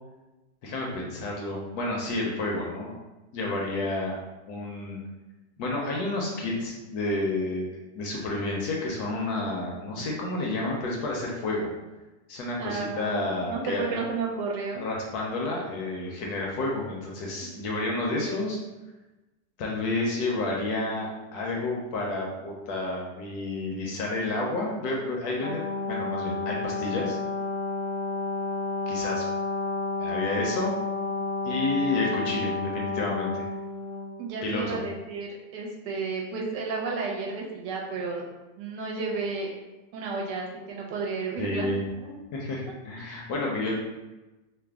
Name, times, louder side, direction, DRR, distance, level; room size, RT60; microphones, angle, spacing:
voice 1, 0.6-2.9 3.3-4.2 4.5-5.0 5.6-7.7 7.9-11.7 12.3-14.1 14.8-18.6 19.6-27.2 28.9-29.2 30.0-30.7 31.4-33.5 34.4-34.8 41.4-41.8 42.3-43.8, left 2 dB, 70° left, -2 dB, 1.0 m, -30 dB
voice 2, 12.6-14.8 17.6-17.7 34.2-38.2 38.6-39.5 39.9-41.7 42.0-42.2, right 4 dB, 80° right, -1 dB, 1.2 m, -32 dB
Brass instrument, 25.4-34.1, left 3 dB, 90° left, 1.3 m, -31 dB
3.2 x 2.0 x 3.4 m, 1.1 s
omnidirectional pair, 1.9 m